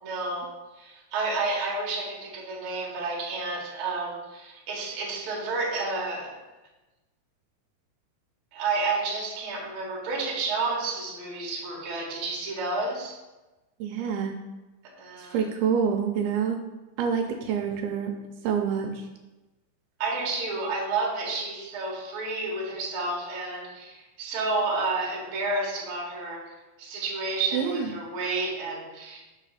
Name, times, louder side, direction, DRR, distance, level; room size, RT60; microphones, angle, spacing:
voice 1, 0.0-6.3 8.5-13.1 15.0-15.4 20.0-26.5 26.8-29.2, right 3 dB, 60° right, -3 dB, 1.5 m, -30 dB
voice 2, 13.8-14.3 15.2-16.6 17.0-18.1 18.4-18.9 27.5-27.9, right 7 dB, 80° right, 3 dB, 2.5 m, -27 dB
6.4 x 3.1 x 5.6 m, 1.1 s
omnidirectional pair, 4.6 m